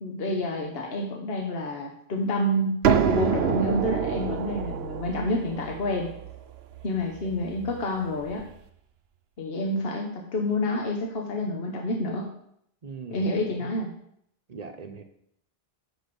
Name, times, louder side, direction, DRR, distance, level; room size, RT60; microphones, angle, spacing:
voice 1, 0.0-6.1 6.8-8.4 9.4-12.3 13.1-13.9, left 1 dB, 70° left, 1 dB, 1.3 m, -28 dB
sound 1, 2.8-8.4, right 8 dB, 80° right, 0.9 m, -28 dB
voice 2, 12.8-13.7 14.5-15.0, right 5 dB, 40° right, 6 dB, 0.9 m, -41 dB
6.2 x 6.0 x 6.9 m, 0.71 s
omnidirectional pair, 1.0 m